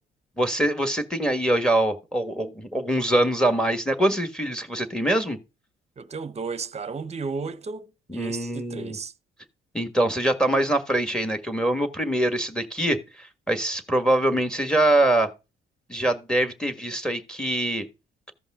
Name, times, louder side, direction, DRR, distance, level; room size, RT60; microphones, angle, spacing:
voice 1, 0.4-5.4 8.1-9.0 9.7-15.3 15.9-17.9, right 1 dB, 5° left, 1.5 m, -24 dB
voice 2, 6.0-9.1, right 4 dB, 35° right, 0.8 m, -34 dB
14.5 x 5.4 x 3.6 m
cardioid pair, 90°, 20 cm